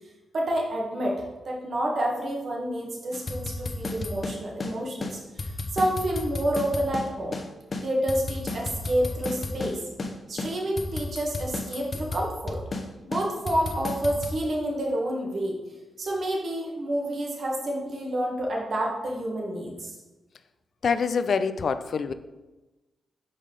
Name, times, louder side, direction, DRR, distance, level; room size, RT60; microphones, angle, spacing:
voice 1, 0.3-7.3 7.8-9.8 10.3-12.6 13.0-15.6 16.0-20.0, right 1 dB, 55° right, -1 dB, 1.9 m, -29 dB
sound 1, 3.1-4.7 5.0-5.1 5.4-7.5 7.7-9.7 10.0-10.1 10.4-12.8 13.1-14.4, left 2 dB, 45° left, 1.0 m, -32 dB
voice 2, 20.8-22.1, left 5 dB, 60° left, 11 dB, 0.4 m, -25 dB
5.4 x 5.4 x 5.0 m, 1.1 s
supercardioid pair, 45°, 0 cm